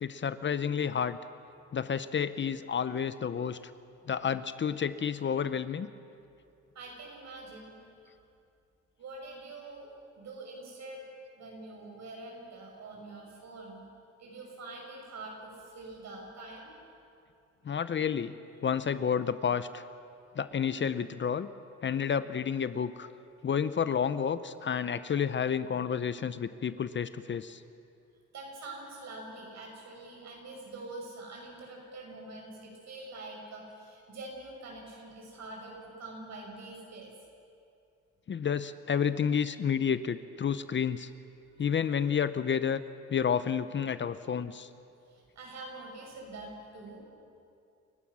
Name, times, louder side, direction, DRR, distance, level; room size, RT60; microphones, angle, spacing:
voice 1, 0.0-1.2 1.7-3.6 4.1-5.9 17.6-18.3 18.6-19.8 20.4-21.5 21.8-23.1 23.4-27.6 38.3-41.1 41.6-42.8 43.1-44.7, left 7 dB, 40° left, 13 dB, 0.7 m, -30 dB
voice 2, 6.7-7.7 8.0-8.1 9.0-11.0 11.3-13.8 14.2-16.7 28.3-37.1 45.1-47.0, right 2 dB, 60° right, 0 dB, 6.6 m, -45 dB
29.0 x 15.0 x 6.3 m, 2.5 s
cardioid pair, 90°, 30 cm